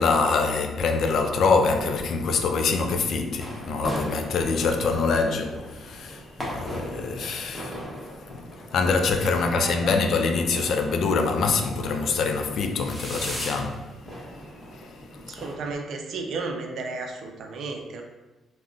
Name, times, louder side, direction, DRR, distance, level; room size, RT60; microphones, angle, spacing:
voice 1, 0.0-7.8 8.3-13.9 14.7-14.9 15.3-15.4, left 4 dB, 65° left, 0.3 m, -25 dB
sound 1, 3.4-15.7, equal, 5° right, 0.9 m, -39 dB
voice 2, 9.2-9.9 15.3-18.0, right 3 dB, 70° right, 0.4 m, -34 dB
3.6 x 2.1 x 2.4 m
cardioid pair, 90°, 0 cm